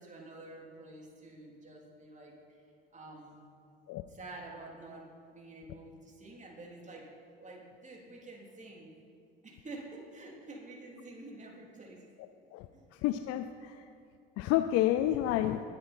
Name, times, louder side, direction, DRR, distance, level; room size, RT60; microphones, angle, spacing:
voice 1, 0.0-2.6 2.9-3.5 4.1-9.0 9.4-12.1 12.7-12.8, right 2 dB, 25° right, -2 dB, 3.5 m, -49 dB
voice 2, 13.0-13.7 14.4-15.6, left 13 dB, 55° left, 9 dB, 0.7 m, -29 dB
20.0 x 10.0 x 4.5 m, 2.3 s
hypercardioid pair, 60°, 29 cm